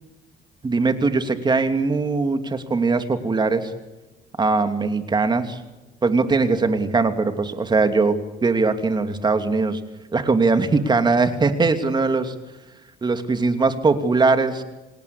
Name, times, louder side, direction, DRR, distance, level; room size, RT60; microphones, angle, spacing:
voice 1, 0.6-3.7 4.4-5.6 6.0-8.2 8.4-9.8 10.1-12.3 13.0-14.6, right 3 dB, 25° right, 8 dB, 2.8 m, -20 dB
28.5 x 19.0 x 8.4 m, 1.1 s
cardioid pair, 110°, 17 cm